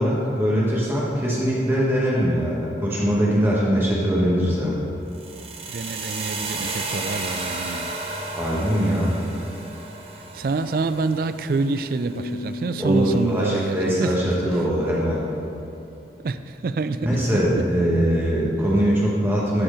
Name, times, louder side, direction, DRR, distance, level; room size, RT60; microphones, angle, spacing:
voice 1, 0.0-4.7 8.3-9.1 12.8-15.2 17.0-19.6, equal, 15° right, -6 dB, 1.1 m, -22 dB
sound 1, 5.1-13.1, right 3 dB, 35° right, 0.9 m, -33 dB
voice 2, 5.7-7.9 10.3-14.2 16.2-17.7, right 3 dB, 55° right, 11 dB, 0.3 m, -27 dB
sound 2, 12.1-15.1, left 2 dB, 80° left, 0.5 m, -38 dB
13.0 x 4.5 x 5.0 m, 2.8 s
head